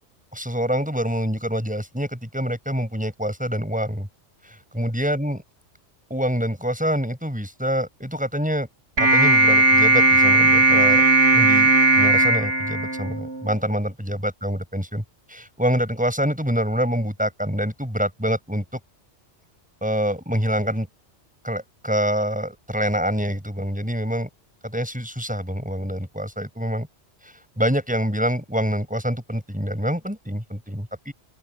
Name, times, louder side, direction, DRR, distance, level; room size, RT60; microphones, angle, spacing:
voice 1, 0.3-4.1 4.4-5.4 6.1-8.7 9.0-11.0 11.3-18.6 19.8-20.9 21.4-24.3 24.6-26.9 27.2-31.1, equal, 5° right, 7.0 m, -26 dB
sound 1, 9.0-13.5, right 2 dB, 80° right, 4.4 m, -17 dB
open air
omnidirectional pair, 1.2 m